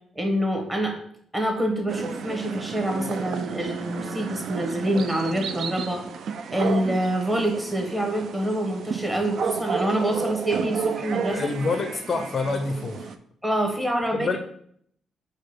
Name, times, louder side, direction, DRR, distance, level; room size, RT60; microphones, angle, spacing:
voice 1, 0.1-0.9 1.3-6.0 6.5-11.5 13.4-14.3, right 1 dB, 15° right, 2 dB, 1.1 m, -26 dB
sound 1, 1.9-13.2, right 6 dB, 65° right, 0.3 m, -32 dB
voice 2, 11.3-13.1 14.1-14.4, left 4 dB, 40° left, 6 dB, 0.4 m, -27 dB
4.7 x 2.2 x 4.5 m, 0.66 s
cardioid pair, 90°, 0 cm